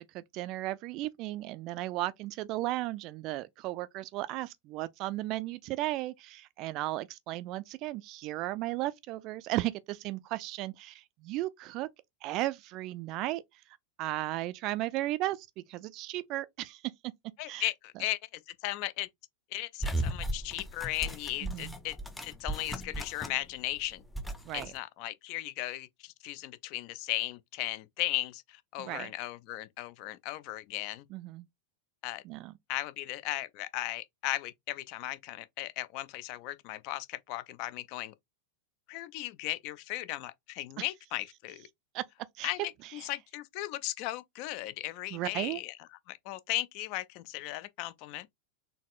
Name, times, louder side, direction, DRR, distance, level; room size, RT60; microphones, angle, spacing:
voice 1, 0.0-11.9 12.2-17.1 17.5-17.7 21.4-21.8 24.4-24.7 28.8-29.1 31.1-31.5 32.2-32.5 40.8-40.9 41.9-42.0 42.3-42.5 42.8-43.1 45.1-45.6, right 16 dB, 40° right, 0.4 m, -35 dB
voice 2, 17.4-19.1 19.5-22.0 22.2-24.0 24.5-31.1 32.0-32.2 32.7-38.1 38.9-41.7 42.4-42.7 43.0-45.7 46.1-48.3, left 16 dB, 45° left, 0.5 m, -36 dB
sound 1, 19.8-23.5 23.8-24.7, right 1 dB, 5° left, 0.7 m, -36 dB
4.1 x 3.3 x 2.4 m
figure-of-eight pair, 90°, 0 cm